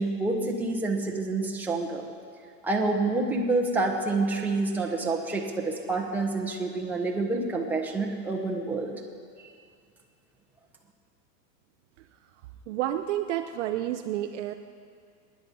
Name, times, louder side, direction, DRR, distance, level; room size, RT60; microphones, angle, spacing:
voice 1, 0.0-2.0 2.6-8.9, right 3 dB, 5° right, -1 dB, 1.1 m, -28 dB
voice 2, 12.7-14.5, right 12 dB, 45° right, 7 dB, 0.7 m, -30 dB
23.5 x 10.5 x 5.3 m, 2.2 s
supercardioid pair, 150°, 50 cm